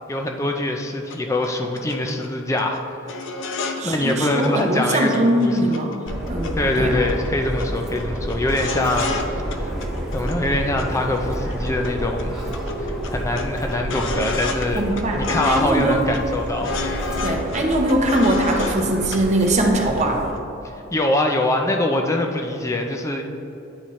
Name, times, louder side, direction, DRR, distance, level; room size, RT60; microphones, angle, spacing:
voice 1, 0.1-3.0 3.8-5.6 6.6-9.4 10.1-12.5 12.8-14.8 15.2-16.8 20.9-23.2, left 1 dB, 15° left, 3 dB, 0.4 m, -23 dB
sound 1, 1.1-1.2 1.4-1.5 1.8-2.3 2.6-2.8 3.1-3.8 4.1-4.2 4.4-5.0 5.2-6.8 7.1-7.3 7.6-7.7 8.0-9.3 9.5-10.4 10.8-11.9 12.2-12.3 12.5-14.7 15.0-15.8 16.1-18.8 19.1-19.2 19.5-20.1 20.3-20.4, left 3 dB, 65° left, 0.5 m, -30 dB
voice 2, 3.8-5.9 6.3-7.0 14.7-15.2 15.4-16.1 17.2-20.2, right 1 dB, 35° right, 1 dB, 0.7 m, -21 dB
Subway metro underground, 6.1-20.3, right 1 dB, 5° right, 1.4 m, -29 dB
9.8 x 4.2 x 3.1 m, 2.9 s
head